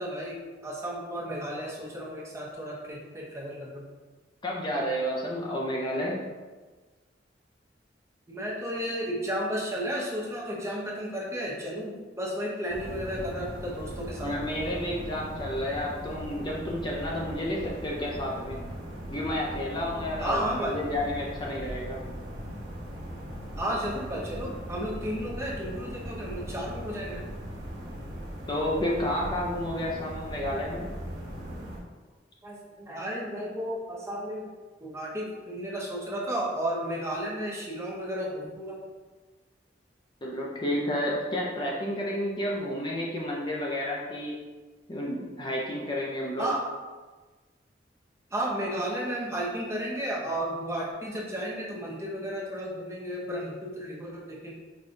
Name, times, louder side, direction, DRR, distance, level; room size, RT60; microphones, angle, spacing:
voice 1, 0.0-3.8 8.3-14.4 20.2-20.8 23.6-27.2 32.4-34.5 34.8-38.8 46.4-46.6 48.3-54.6, equal, 15° right, -4 dB, 0.6 m, -33 dB
voice 2, 4.4-6.2 14.2-18.6 19.1-22.0 28.5-30.8 40.2-44.4 44.9-46.5, left 1 dB, 25° left, -3 dB, 0.4 m, -31 dB
sound 1, 12.7-31.8, equal, 90° right, 1.1 m, -39 dB
5.1 x 2.3 x 2.6 m, 1.3 s
head